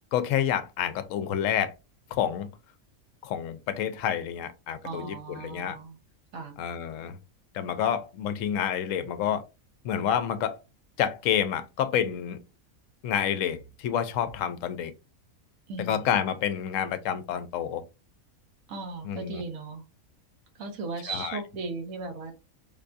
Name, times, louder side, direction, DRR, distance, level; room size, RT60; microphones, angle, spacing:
voice 1, 0.1-1.7 2.1-2.5 3.2-5.8 6.6-7.2 7.5-9.4 9.8-10.6 11.0-12.4 13.0-14.9 15.8-17.8 19.0-19.4 21.1-21.4, left 9 dB, 70° left, 0.9 m, -28 dB
voice 2, 4.8-6.0 6.3-6.6 15.7-16.1 18.7-19.8 20.6-22.3, right 3 dB, 70° right, 1.3 m, -37 dB
5.2 x 2.3 x 2.5 m
omnidirectional pair, 1.5 m